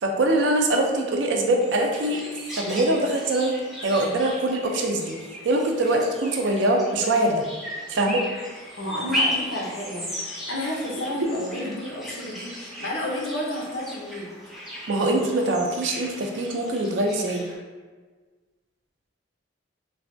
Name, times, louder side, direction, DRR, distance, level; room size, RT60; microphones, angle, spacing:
voice 1, 0.0-2.2 2.6-3.6 3.8-5.1 5.4-7.4 7.9-8.2 11.6-11.8 14.9-17.4, right 1 dB, 70° right, 2 dB, 0.4 m, -23 dB
sound 1, 1.6-17.6, equal, ahead, 0.4 m, -36 dB
voice 2, 8.8-14.4, left 1 dB, 85° left, -2 dB, 0.7 m, -31 dB
3.1 x 2.2 x 2.5 m, 1.4 s
head